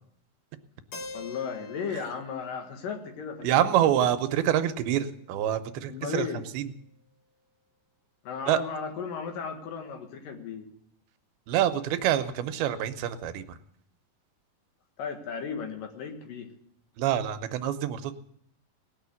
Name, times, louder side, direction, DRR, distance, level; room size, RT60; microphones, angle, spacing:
Keyboard (musical), 0.9-4.8, left 3 dB, 45° left, 2.3 m, -46 dB
voice 1, 1.1-4.1 5.9-6.4 8.2-10.7 15.0-16.5, left 6 dB, 65° left, 4 dB, 3.2 m, -35 dB
voice 2, 3.4-6.3 6.5-6.7 8.5-8.6 11.5-13.6 17.0-18.1, right 11 dB, 85° right, 10 dB, 2.8 m, -26 dB
19.0 x 6.7 x 9.5 m, 0.71 s
omnidirectional pair, 4.3 m